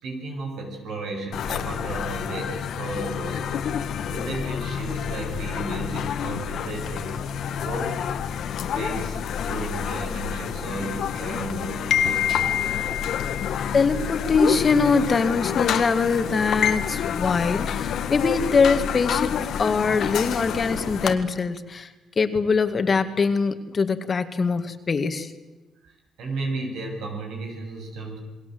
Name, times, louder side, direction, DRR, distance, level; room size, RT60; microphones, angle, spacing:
voice 1, 0.0-3.7 4.1-7.2 7.6-8.0 8.7-12.6 25.8-28.2, right 3 dB, 80° right, 3 dB, 7.1 m, -34 dB
sound 1, 1.3-21.1, left 8 dB, 75° left, 1.6 m, -28 dB
voice 2, 13.7-21.9 22.2-25.3, left 4 dB, 40° left, 9 dB, 2.1 m, -23 dB
28.0 x 20.5 x 7.9 m, 1.1 s
cardioid pair, 90°, 0 cm